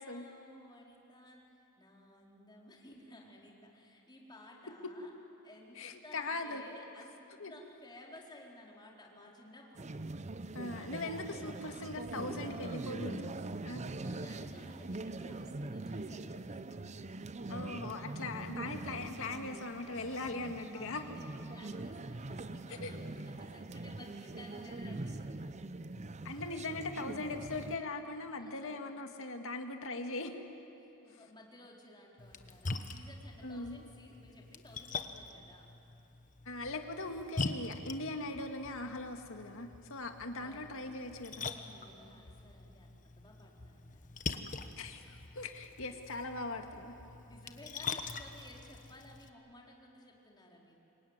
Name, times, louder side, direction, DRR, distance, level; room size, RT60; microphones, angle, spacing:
voice 1, 0.0-5.1 5.4-7.2 7.5-9.9 14.0-16.9 20.7-25.4 28.4-28.8 30.8-35.7 40.4-40.7 41.4-44.2 47.1-50.8, left 1 dB, 20° left, -1 dB, 4.1 m, -56 dB
voice 2, 5.8-6.6 7.4-7.5 10.5-13.4 13.6-13.8 17.5-21.0 22.7-23.0 26.2-30.4 33.4-33.8 36.5-41.5 44.8-46.9, left 2 dB, 65° left, 5 dB, 2.1 m, -40 dB
sound 1, 9.7-27.8, right 2 dB, 30° right, 0.7 m, -43 dB
Splash splatter, 32.2-49.3, left 4 dB, 35° left, 1.2 m, -44 dB
26.5 x 23.0 x 9.6 m, 2.8 s
head